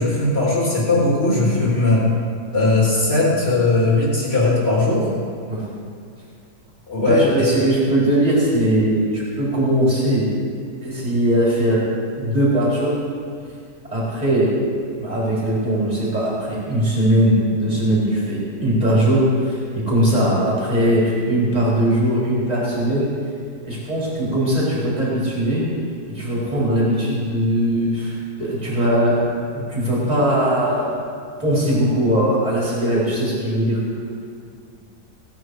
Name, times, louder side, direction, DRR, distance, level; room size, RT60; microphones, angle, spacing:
voice 1, 0.0-2.0 2.5-5.1 6.9-7.6, left 2 dB, 35° left, -5 dB, 3.2 m, -18 dB
voice 2, 7.0-10.3 10.8-11.8 12.1-12.9 13.9-14.5 15.0-23.1 23.6-25.7 26.1-29.2 29.5-30.9 31.4-33.8, right 1 dB, 25° right, -7 dB, 4.4 m, -20 dB
18.0 x 9.6 x 4.8 m, 2.2 s
omnidirectional pair, 1.8 m